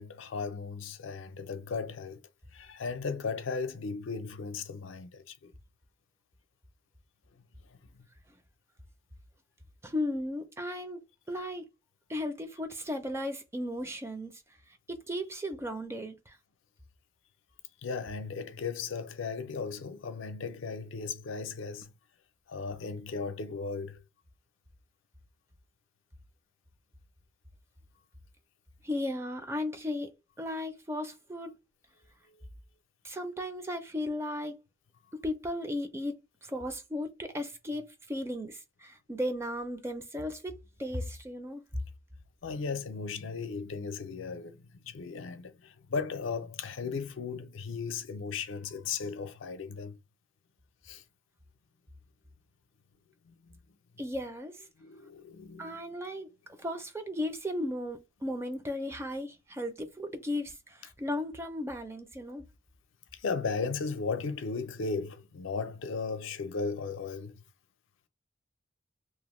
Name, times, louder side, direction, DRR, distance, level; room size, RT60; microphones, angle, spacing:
voice 1, 0.0-2.2 2.5-5.5 7.7-7.8 17.8-21.9 22.5-24.0 32.3-32.5 42.4-50.0 50.8-51.0 53.2-53.6 54.8-55.9 63.1-67.4, left 4 dB, 80° left, 0.5 m, -36 dB
voice 2, 9.8-11.7 12.1-14.3 14.9-16.4 28.8-30.1 30.4-31.5 33.0-34.6 35.1-41.6 54.0-54.6 55.6-56.3 56.6-62.5, left 1 dB, 15° right, 0.4 m, -35 dB
2.8 x 2.1 x 3.0 m
head